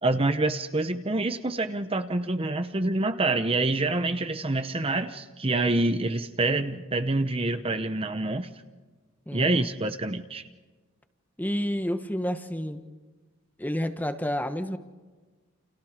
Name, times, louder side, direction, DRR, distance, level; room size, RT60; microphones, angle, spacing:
voice 1, 0.0-8.5 9.3-10.4, right 2 dB, 25° right, 9 dB, 0.9 m, -26 dB
voice 2, 9.3-9.7 11.4-12.8 13.6-14.8, equal, 10° left, 9 dB, 1.2 m, -30 dB
29.5 x 29.0 x 5.1 m, 1.3 s
head